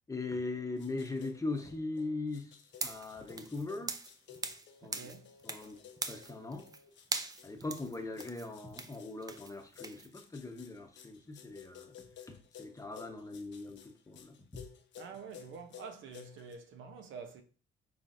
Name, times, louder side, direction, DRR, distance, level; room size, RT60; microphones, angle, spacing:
voice 1, 0.1-4.0 4.8-5.1 5.4-6.7 7.4-14.7, left 3 dB, 15° left, 0.8 m, -40 dB
sound 1, 0.5-16.6, left 8 dB, 70° left, 0.7 m, -55 dB
sound 2, 2.7-4.7 4.9-5.7 6.0-6.8 7.1-10.1, right 3 dB, 20° right, 0.4 m, -40 dB
voice 2, 4.8-5.3 15.0-17.4, right 5 dB, 75° right, 0.7 m, -47 dB
5.7 x 3.3 x 2.5 m
cardioid pair, 90°, 20 cm